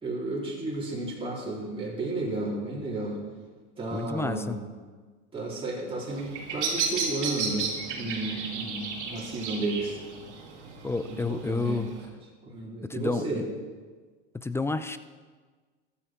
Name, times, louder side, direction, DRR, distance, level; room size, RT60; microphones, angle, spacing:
voice 1, 0.0-3.2 3.8-4.7 5.3-10.0 11.1-11.2 11.5-11.8 12.4-13.4, right 2 dB, 15° right, -5 dB, 3.7 m, -32 dB
voice 2, 3.9-4.6 10.8-11.9 12.9-13.4 14.4-15.0, left 3 dB, 10° left, 12 dB, 0.4 m, -30 dB
Bird vocalization bird call bird song, 6.1-12.0, right 5 dB, 85° right, 3.0 m, -34 dB
14.5 x 11.5 x 4.5 m, 1.4 s
hypercardioid pair, 100°, 34 cm